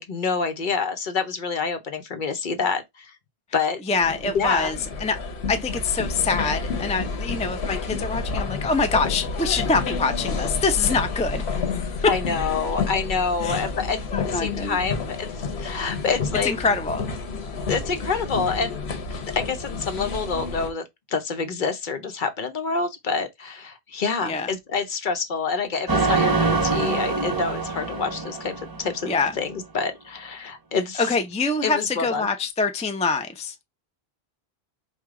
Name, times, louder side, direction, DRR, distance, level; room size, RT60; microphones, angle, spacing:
voice 1, 0.0-3.2 3.5-3.8 4.3-4.7 12.1-14.0 14.3-16.5 17.7-18.8 19.3-31.1 31.6-32.3, left 5 dB, 55° left, 0.8 m, -27 dB
voice 2, 3.9-5.2 5.5-12.0 13.4-13.7 14.1-14.8 16.4-17.0 24.2-24.5 29.1-29.3 31.0-33.6, left 4 dB, 10° left, 0.3 m, -25 dB
caminhar para folhear livro serralves, 4.0-20.7, left 4 dB, 85° left, 1.2 m, -30 dB
sound 1, 25.9-29.3, right 4 dB, 20° right, 0.9 m, -24 dB
4.8 x 2.3 x 3.6 m
omnidirectional pair, 1.1 m